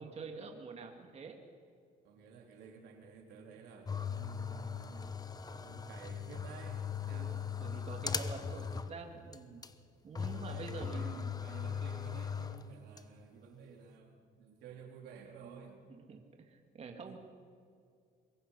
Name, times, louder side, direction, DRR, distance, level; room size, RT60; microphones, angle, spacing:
voice 1, 0.0-1.4 7.1-9.6 10.0-11.3 16.1-17.2, right 4 dB, 40° right, 3 dB, 2.5 m, -47 dB
voice 2, 2.0-5.1 5.5-7.3 10.2-15.8 17.0-17.2, right 6 dB, 85° right, 2 dB, 3.5 m, -53 dB
sound 1, 3.9-9.1 9.3-9.4 9.6-9.7 10.2-13.0, left 6 dB, 20° left, 1.0 m, -39 dB
24.5 x 22.0 x 5.7 m, 2.3 s
cardioid pair, 110°, 17 cm